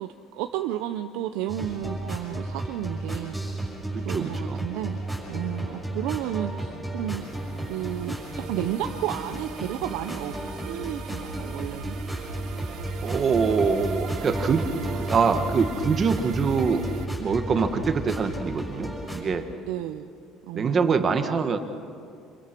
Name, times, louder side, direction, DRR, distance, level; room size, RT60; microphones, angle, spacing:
voice 1, 0.0-3.4 4.0-5.0 5.3-7.3 7.6-12.0 19.7-20.1 20.4-21.0, right 12 dB, 85° right, 7 dB, 0.8 m, -32 dB
sound 1, 1.5-19.2, right 1 dB, 5° right, 5.8 m, -33 dB
voice 2, 3.9-4.6 13.0-14.6 14.9-16.8 17.2-19.4 20.5-21.6, right 5 dB, 30° right, 7 dB, 1.6 m, -24 dB
sound 2, 4.7-10.9, left 1 dB, 85° left, 6.8 m, -49 dB
sound 3, 7.2-17.1, right 9 dB, 60° right, 1.6 m, -41 dB
27.5 x 23.0 x 6.1 m, 2.4 s
cardioid pair, 150°, 0 cm